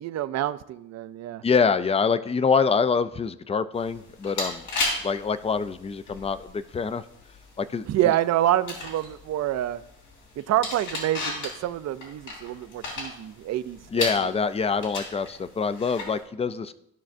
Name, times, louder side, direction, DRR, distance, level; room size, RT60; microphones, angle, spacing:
voice 1, 0.0-1.4 7.9-9.8 10.4-14.1, right 13 dB, 60° right, 0.5 m, -27 dB
voice 2, 1.4-4.6 5.0-7.0 7.6-7.9 13.9-16.8, left 5 dB, 20° left, 0.4 m, -25 dB
sound 1, 3.8-16.2, left 2 dB, 90° left, 3.3 m, -36 dB
14.0 x 6.0 x 2.6 m
cardioid pair, 105°, 30 cm